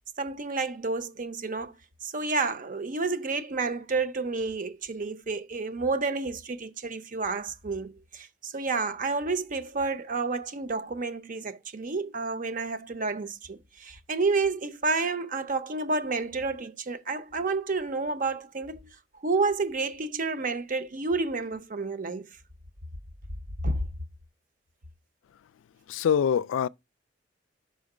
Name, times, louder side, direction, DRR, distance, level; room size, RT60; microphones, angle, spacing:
voice 1, 0.2-1.7 2.0-18.9 19.2-22.3 23.6-23.8, right 3 dB, 45° right, 0.7 m, -30 dB
voice 2, 25.9-26.7, left 8 dB, 90° left, 0.3 m, -24 dB
5.6 x 5.2 x 4.9 m
head